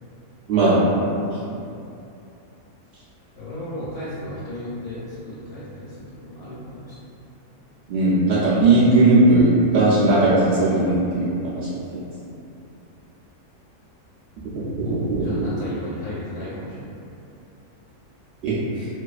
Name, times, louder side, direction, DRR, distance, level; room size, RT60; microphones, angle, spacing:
voice 1, 0.5-0.9 7.9-12.0 14.5-15.5 18.4-18.9, right 2 dB, 85° right, -10 dB, 0.5 m, -18 dB
voice 2, 3.3-7.0 14.8-15.0 15.2-16.9, left 1 dB, 60° left, -11 dB, 0.9 m, -35 dB
2.7 x 2.3 x 2.3 m, 2.7 s
omnidirectional pair, 1.6 m